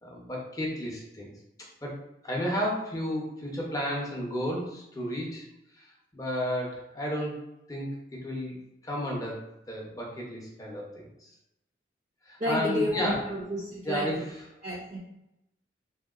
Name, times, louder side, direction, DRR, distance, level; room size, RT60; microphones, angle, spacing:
voice 1, 0.0-1.3 1.8-2.0 2.2-5.4 5.8-5.9 6.1-7.4 7.7-11.3 12.3-13.2 13.9-14.4, equal, 20° left, -2 dB, 0.6 m, -32 dB
voice 2, 12.4-14.2 14.6-15.0, left 1 dB, 35° right, -4 dB, 0.4 m, -31 dB
3.0 x 2.7 x 2.3 m, 0.86 s
head